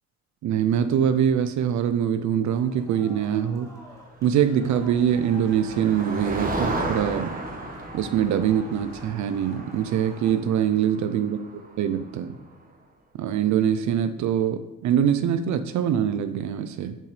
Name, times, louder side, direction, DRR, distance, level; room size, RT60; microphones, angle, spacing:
voice 1, 0.4-3.7 4.2-7.3 7.9-12.4 13.2-17.0, right 9 dB, 70° right, 9 dB, 0.5 m, -23 dB
sound 1, 2.4-10.4, equal, 10° left, 2.1 m, -49 dB
sound 2, 4.3-9.4, left 3 dB, 50° left, 1.4 m, -49 dB
Motor vehicle (road), 4.5-12.3, right 2 dB, 30° right, 1.5 m, -34 dB
10.5 x 5.7 x 3.2 m, 1.0 s
cardioid pair, 90°, 30 cm